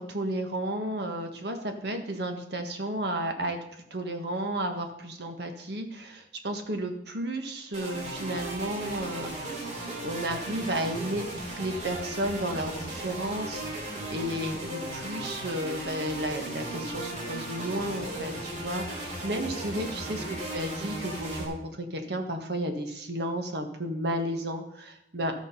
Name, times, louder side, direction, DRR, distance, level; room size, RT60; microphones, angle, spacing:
voice 1, 0.0-3.6 3.9-9.7 10.0-20.2 20.5-25.3, right 1 dB, 65° right, 5 dB, 1.5 m, -33 dB
sound 1, 7.7-21.4, right 1 dB, 40° right, 2.8 m, -36 dB
13.0 x 6.3 x 5.4 m, 0.75 s
head